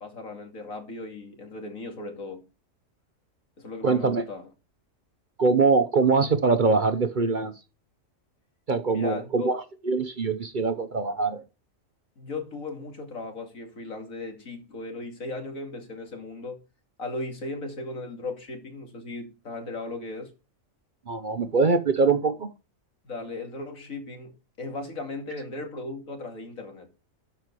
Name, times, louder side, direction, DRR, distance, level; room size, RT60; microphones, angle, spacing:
voice 1, 0.0-2.4 3.6-4.5 8.9-9.5 12.2-16.6 17.0-20.3 23.0-26.9, left 2 dB, 80° left, 2.9 m, -37 dB
voice 2, 3.8-4.2 5.4-7.5 8.7-11.4 21.1-22.5, right 4 dB, 45° right, 0.8 m, -23 dB
12.5 x 5.8 x 4.7 m
omnidirectional pair, 1.4 m